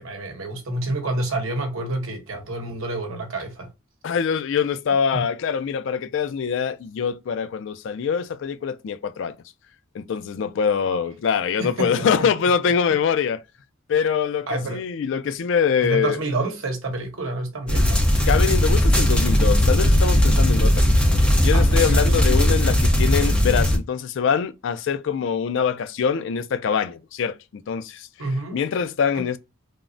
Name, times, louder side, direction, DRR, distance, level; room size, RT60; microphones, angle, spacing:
voice 1, 0.0-3.7 5.1-5.2 10.8-11.1 11.6-12.3 12.6-12.7 14.5-14.8 15.8-18.0 21.5-22.0 28.2-28.6 29.1-29.2, right 2 dB, 80° right, 0.9 m, -28 dB
voice 2, 4.0-9.3 9.9-13.4 13.9-16.2 18.3-20.9 21.4-28.1 28.5-29.4, left 6 dB, 65° left, 0.3 m, -24 dB
sound 1, 17.7-23.8, left 1 dB, 5° left, 0.6 m, -18 dB
3.4 x 2.0 x 2.5 m
head